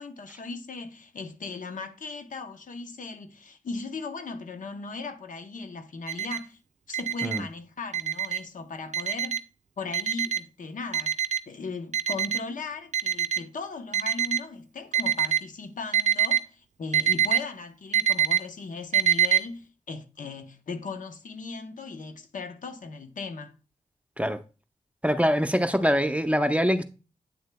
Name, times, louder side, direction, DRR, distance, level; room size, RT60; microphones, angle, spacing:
voice 1, 0.0-6.6 6.9-9.4 9.8-11.2 11.5-23.5, left 4 dB, 80° left, 0.8 m, -38 dB
Alarm, 6.1-6.4 6.9-7.4 7.9-8.4 8.9-9.4 9.9-10.4 10.9-11.4 11.9-12.4 12.9-13.4 13.9-14.4 14.9-15.4 15.9-16.4 16.9-17.4 17.9-18.4 18.9-19.4, right 9 dB, 65° right, 0.5 m, -24 dB
voice 2, 25.0-26.8, equal, 10° right, 0.8 m, -23 dB
8.7 x 6.6 x 2.2 m
cardioid pair, 50°, 13 cm